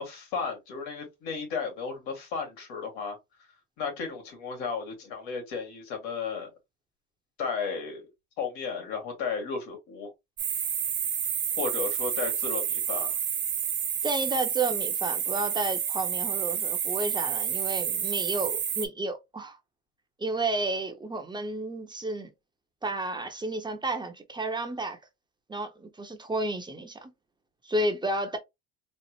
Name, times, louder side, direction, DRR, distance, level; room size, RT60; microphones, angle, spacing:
voice 1, 0.0-3.2 3.8-6.5 7.4-8.1 8.4-10.1 11.6-13.2, left 5 dB, 90° left, 2.0 m, -34 dB
sound 1, 10.4-18.9, right 8 dB, 35° right, 0.9 m, -29 dB
voice 2, 14.0-19.6 20.2-22.3 22.8-25.0 25.5-27.1 27.6-28.4, right 2 dB, 15° right, 0.7 m, -31 dB
4.2 x 2.0 x 3.0 m
cardioid pair, 120°, 32 cm